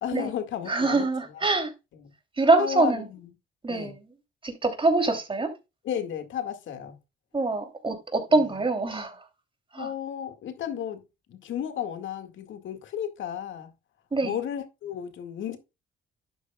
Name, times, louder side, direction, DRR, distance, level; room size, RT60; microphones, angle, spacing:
voice 1, 0.0-1.1 1.3-1.5 2.0-2.1 2.6-3.3 3.7-3.9 5.8-7.0 8.3-8.4 9.8-11.0 11.3-13.7 14.2-15.6, left 9 dB, 75° left, 2.0 m, -33 dB
voice 2, 0.7-1.7 2.4-3.0 3.6-4.0 4.4-5.5 7.3-9.2 9.7-9.9 14.1-14.4, right 3 dB, 25° right, 3.1 m, -24 dB
12.0 x 8.0 x 2.3 m
cardioid pair, 90°, 20 cm